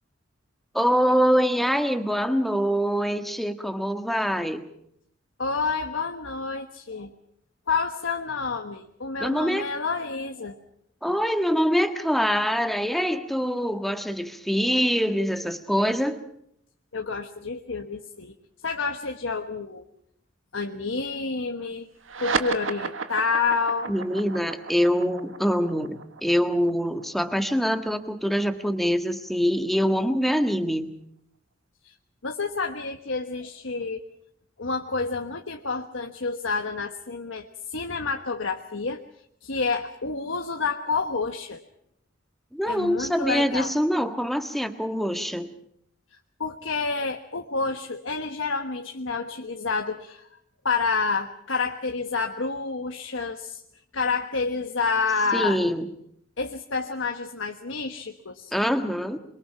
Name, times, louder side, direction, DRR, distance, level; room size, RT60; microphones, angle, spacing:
voice 1, 0.7-4.7 9.2-9.7 11.0-16.2 23.9-30.9 42.5-45.5 55.3-55.9 58.5-59.2, equal, ahead, 7 dB, 1.6 m, -24 dB
voice 2, 5.4-7.1 7.7-10.6 16.9-18.3 18.6-19.9 20.5-21.9 22.2-23.9 31.8-31.9 32.2-34.0 34.6-39.0 39.4-41.6 42.7-43.7 46.4-50.3 50.6-53.6 53.9-55.6 56.4-58.5, left 4 dB, 75° left, 5 dB, 1.3 m, -29 dB
sound 1, 22.0-28.9, right 5 dB, 80° right, 1.6 m, -34 dB
27.5 x 23.0 x 5.8 m, 0.72 s
head